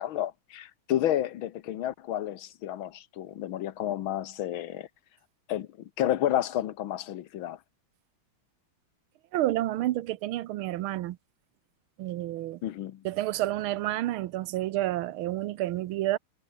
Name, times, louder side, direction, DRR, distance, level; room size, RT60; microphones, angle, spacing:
voice 1, 0.0-4.9 5.5-5.7 6.0-7.6 12.6-13.0, left 12 dB, 75° left, 1.7 m, -30 dB
voice 2, 9.3-11.2 12.0-12.6 13.0-16.2, right 15 dB, 85° right, 1.6 m, -29 dB
omnidirectional pair, 2.3 m